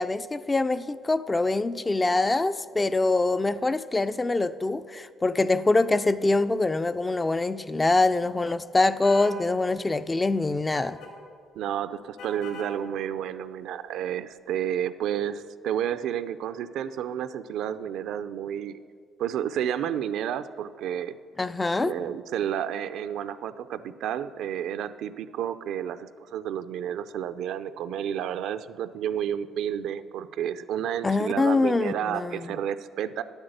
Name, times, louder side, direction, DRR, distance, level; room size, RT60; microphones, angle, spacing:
voice 1, 0.0-11.0 21.4-22.1 31.0-32.5, left 2 dB, 15° left, 13 dB, 0.3 m, -24 dB
sound 1, 9.0-9.4 10.7-11.1 12.2-12.7, equal, 80° left, 3.6 m, -40 dB
voice 2, 11.6-18.8 19.2-21.2 21.8-33.2, right 9 dB, 75° right, 12 dB, 0.4 m, -31 dB
9.6 x 8.0 x 7.9 m, 2.1 s
cardioid pair, 135°, 0 cm